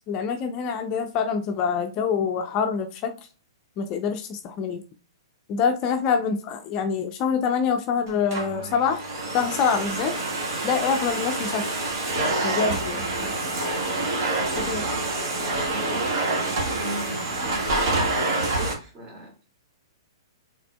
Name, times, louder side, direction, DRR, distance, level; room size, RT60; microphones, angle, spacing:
voice 1, 0.1-3.1 3.8-4.8 5.5-9.0 9.3-10.2 10.6-11.7 12.4-13.3 14.6-14.8, left 6 dB, 35° left, 6 dB, 0.5 m, -25 dB
Domestic sounds home sounds, 8.1-18.7, right 2 dB, 55° right, 1.7 m, -27 dB
voice 2, 14.6-19.3, right 1 dB, 25° right, 1 dB, 2.1 m, -39 dB
5.9 x 3.7 x 2.2 m, 0.35 s
figure-of-eight pair, 115°, 2 cm